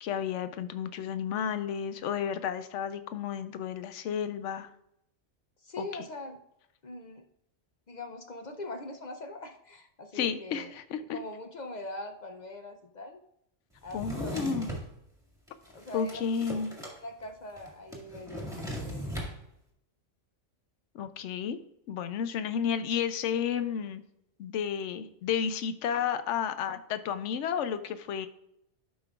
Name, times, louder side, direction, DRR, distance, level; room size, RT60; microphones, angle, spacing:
voice 1, 0.0-4.7 5.8-5.9 10.2-11.2 13.9-14.7 15.9-16.7 20.9-21.6 21.9-24.0 24.4-28.3, left 7 dB, 80° left, 11 dB, 0.9 m, -32 dB
voice 2, 5.6-6.4 6.8-7.2 7.9-13.2 13.8-14.7 15.7-16.2 16.9-19.2, left 2 dB, 50° left, 5 dB, 0.6 m, -42 dB
Drawer open or close, 13.9-14.9 15.5-17.0 17.2-17.3 17.6-19.3, equal, 5° right, 1.7 m, -38 dB
12.0 x 5.3 x 2.3 m, 0.80 s
omnidirectional pair, 1.3 m